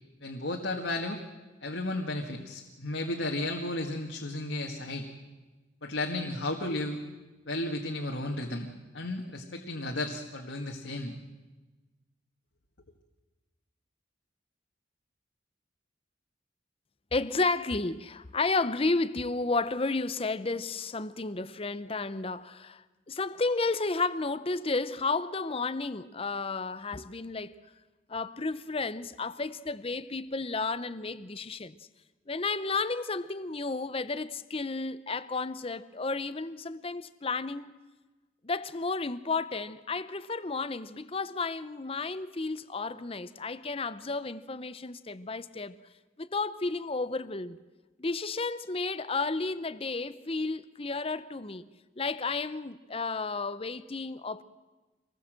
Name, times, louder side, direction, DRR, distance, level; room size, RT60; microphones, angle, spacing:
voice 1, 0.2-1.2 1.6-5.1 5.8-7.0 7.5-8.7 8.9-11.2, left 2 dB, 70° left, 1.9 m, -33 dB
voice 2, 17.1-27.5 28.1-31.8 32.3-37.7 38.4-45.8 46.2-47.6 48.0-51.6 52.0-54.4, left 3 dB, 30° left, 0.7 m, -32 dB
25.5 x 20.0 x 7.6 m
head